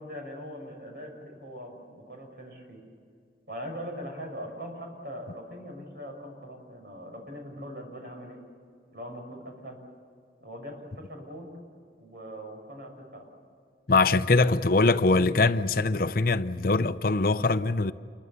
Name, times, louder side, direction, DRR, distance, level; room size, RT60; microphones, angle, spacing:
voice 1, 0.0-2.8 3.5-8.4 8.9-9.8 10.4-11.5 12.0-13.3, equal, 60° right, 6.4 m, -41 dB
voice 2, 13.9-17.9, left 3 dB, 55° left, 0.7 m, -22 dB
28.5 x 23.0 x 6.9 m
head